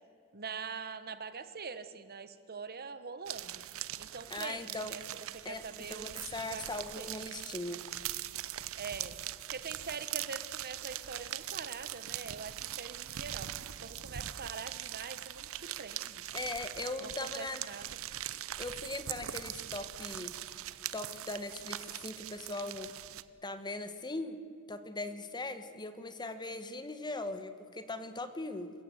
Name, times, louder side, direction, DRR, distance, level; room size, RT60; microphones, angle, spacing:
voice 1, 0.3-3.6 4.0-5.0 5.3-6.1 6.5-7.1 8.7-9.2 9.5-13.5 13.8-16.2 17.0-18.0, right 5 dB, 45° right, 12 dB, 1.2 m, -44 dB
sound 1, 3.3-23.2, right 12 dB, 65° right, 0.8 m, -41 dB
voice 2, 4.3-4.9 5.4-7.8 16.3-17.6 18.6-20.4 20.9-22.9 23.4-24.4 24.7-28.7, left 2 dB, 20° left, 10 dB, 1.4 m, -40 dB
27.5 x 16.0 x 8.0 m, 2.4 s
head